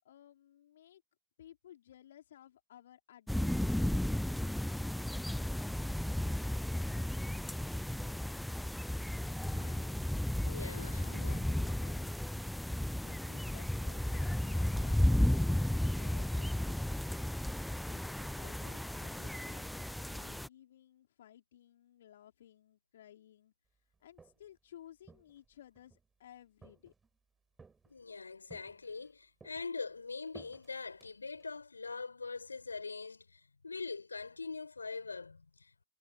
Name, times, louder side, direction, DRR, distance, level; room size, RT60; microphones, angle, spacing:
voice 1, 0.0-1.0 1.4-4.3 9.5-10.1 10.3-12.4 12.9-17.3 17.9-23.5 24.0-26.9, left 11 dB, 60° left, 4.2 m, -58 dB
sound 1, 3.3-20.5, left 1 dB, ahead, 0.3 m, -34 dB
voice 2, 10.4-11.4 27.9-35.8, left 4 dB, 75° left, 5.3 m, -43 dB
Walk footsteps, 23.9-24.6 25.0-26.1 26.6-27.2 27.6-28.1 28.5-29.1 29.4-31.6, right 4 dB, 15° right, 5.9 m, -59 dB
figure-of-eight pair, 90°, 0 cm